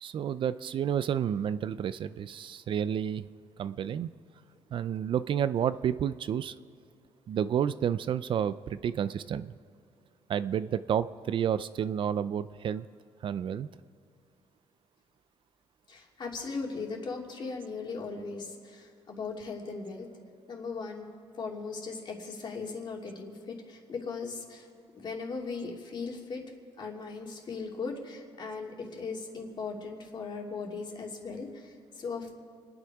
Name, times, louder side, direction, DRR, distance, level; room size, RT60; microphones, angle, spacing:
voice 1, 0.0-3.3 3.6-4.1 4.7-6.5 7.3-9.5 10.3-12.9 13.2-13.7, right 9 dB, 55° right, 14 dB, 0.4 m, -30 dB
voice 2, 15.9-20.1 20.5-21.1 21.3-24.7 24.9-26.4 26.8-32.3, left 4 dB, 45° left, 0 dB, 2.7 m, -38 dB
28.0 x 9.8 x 4.8 m, 2.4 s
cardioid pair, 125°, 10 cm